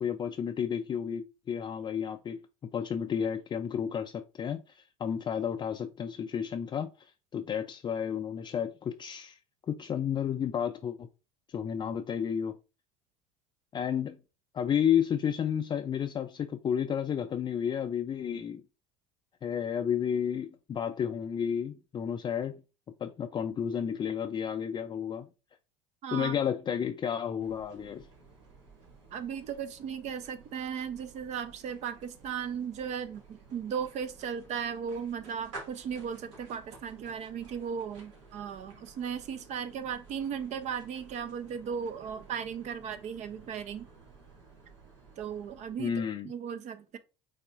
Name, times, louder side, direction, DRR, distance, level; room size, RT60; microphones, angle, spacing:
voice 1, 0.0-2.4 2.7-6.9 7.3-9.4 9.7-11.1 11.5-12.5 13.7-14.2 14.5-18.6 19.4-22.6 23.0-25.3 26.1-28.1 45.8-46.3, left 8 dB, 30° left, 0.4 m, -31 dB
voice 2, 26.0-26.4 29.1-43.9 45.2-45.9 46.2-47.0, right 7 dB, 45° right, 0.7 m, -36 dB
sound 1, 27.4-46.0, right 3 dB, 80° right, 2.0 m, -53 dB
5.5 x 3.5 x 2.5 m
hypercardioid pair, 85°, 16 cm